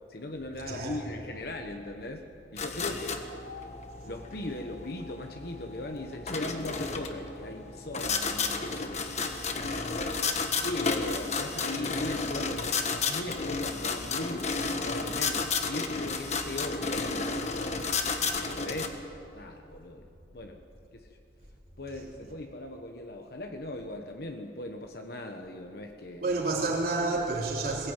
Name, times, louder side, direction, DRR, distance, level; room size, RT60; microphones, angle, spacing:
voice 1, 0.1-2.3 2.5-3.2 4.0-8.7 10.6-14.5 14.8-17.5 18.2-19.0 19.3-20.6 20.9-21.1 21.8-26.3, left 1 dB, 60° left, 4 dB, 1.3 m, -38 dB
sound 1, 2.6-18.9, left 4 dB, 40° left, 1.5 m, -32 dB
voice 2, 26.2-27.9, right 3 dB, 55° right, -4 dB, 3.9 m, -30 dB
21.5 x 16.0 x 9.1 m, 2.7 s
head